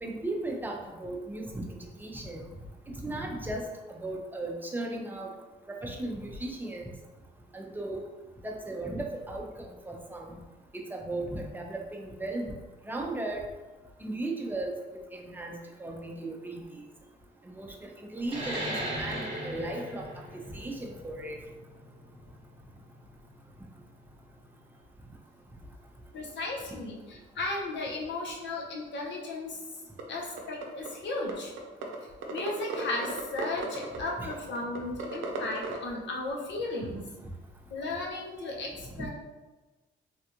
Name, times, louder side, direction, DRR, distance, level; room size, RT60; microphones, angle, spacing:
voice 1, 0.0-1.6 2.0-2.4 3.0-5.3 5.7-6.9 7.5-8.0 8.4-10.4 10.7-12.5 12.9-13.4 14.0-14.7 15.1-16.8 17.6-17.7 18.0-20.0 20.5-21.4 34.2-34.3 37.2-37.3, right 2 dB, 10° right, 0 dB, 0.5 m, -36 dB
sound 1, 18.2-23.4, right 1 dB, 25° right, 1.2 m, -37 dB
voice 2, 26.1-29.6 30.1-31.5 32.3-37.0 37.7-39.1, left 2 dB, 65° left, -1 dB, 0.8 m, -35 dB
sound 2, 30.0-30.1 30.4-30.9 31.3-31.4 31.6-31.9 32.2-35.8, right 4 dB, 75° right, 0.6 m, -35 dB
3.3 x 2.4 x 2.9 m, 1.2 s
cardioid pair, 90°, 20 cm